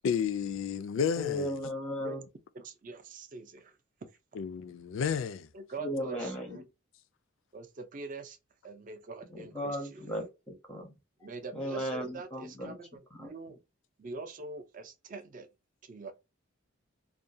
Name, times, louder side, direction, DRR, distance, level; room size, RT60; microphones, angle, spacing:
voice 1, 0.0-1.5 4.3-5.5, left 7 dB, 65° left, 0.3 m, -31 dB
voice 2, 1.2-2.2 5.8-6.6 9.3-10.9 11.5-12.8 13.2-13.3, equal, 5° left, 0.6 m, -36 dB
voice 3, 2.5-4.1 5.5-6.6 7.5-8.4 8.6-10.1 11.2-13.6 14.0-15.5 15.8-16.1, right 3 dB, 40° right, 0.4 m, -44 dB
2.3 x 2.2 x 2.6 m
head